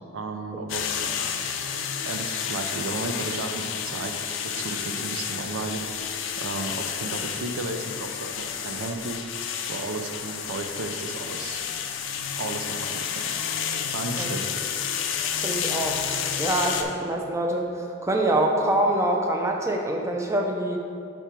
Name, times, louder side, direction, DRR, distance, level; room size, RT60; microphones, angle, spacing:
voice 1, 0.1-1.2 1.5-1.6 2.0-11.6 12.4-13.3 13.9-14.5, right 3 dB, 75° right, 6 dB, 0.5 m, -34 dB
sound 1, 0.7-16.8, left 7 dB, 60° left, 0.4 m, -30 dB
voice 2, 15.4-16.0 16.4-17.7 18.0-20.8, right 1 dB, 15° right, 1 dB, 0.4 m, -25 dB
5.3 x 4.6 x 4.4 m, 2.4 s
head